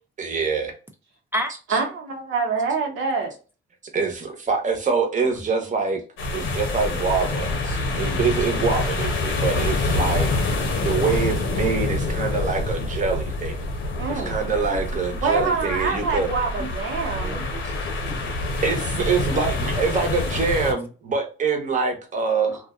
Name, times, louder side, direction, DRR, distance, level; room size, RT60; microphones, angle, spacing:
voice 1, 0.2-0.7 3.9-6.0 6.3-13.6 14.1-16.3 18.6-22.6, right 5 dB, 40° right, 0.9 m, -25 dB
voice 2, 1.7-3.3 14.0-14.4 15.2-17.4, right 4 dB, 85° right, 0.9 m, -25 dB
voice 3, 5.2-5.9 10.8-11.3 14.7-15.2 16.6-16.7 17.0-18.4 22.5-22.7, equal, 10° right, 0.4 m, -35 dB
sound 1, 6.2-20.7, left 2 dB, 75° left, 0.7 m, -26 dB
2.5 x 2.2 x 2.4 m
cardioid pair, 90°, 20 cm